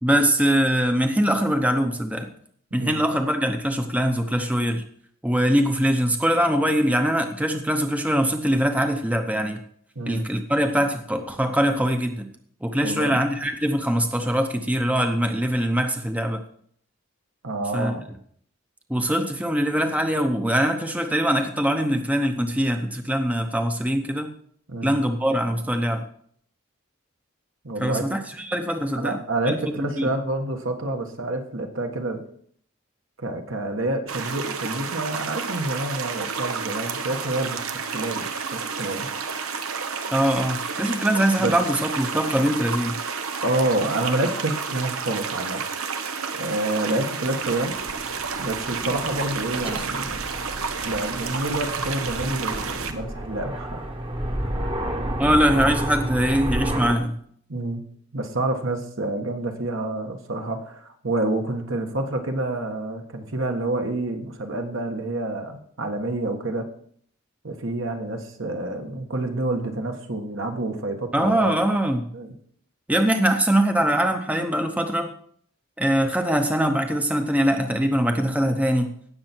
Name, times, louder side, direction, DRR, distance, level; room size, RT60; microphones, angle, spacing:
voice 1, 0.0-2.3 2.7-4.8 5.2-9.6 10.1-12.3 12.6-16.4 17.7-17.9 18.9-24.3 24.8-26.0 27.8-29.2 29.5-30.1 40.1-43.0 55.2-57.1 71.1-72.0 72.9-75.1 75.8-78.9, equal, 5° right, 5 dB, 0.8 m, -22 dB
voice 2, 9.9-10.3 12.8-13.2 17.4-18.0 24.7-25.0 27.6-28.1 28.9-32.2 33.2-39.1 41.4-41.5 43.4-45.7 46.4-47.8 48.4-50.3 50.8-53.9 54.4-54.7 57.5-57.8 58.1-66.7 67.4-71.6 72.1-72.3, right 2 dB, 65° right, 4 dB, 1.5 m, -28 dB
sound 1, 34.1-52.9, right 5 dB, 85° right, 1.1 m, -30 dB
Aircraft, 47.4-56.9, right 1 dB, 25° right, 1.2 m, -31 dB
17.5 x 6.9 x 4.5 m, 0.63 s
head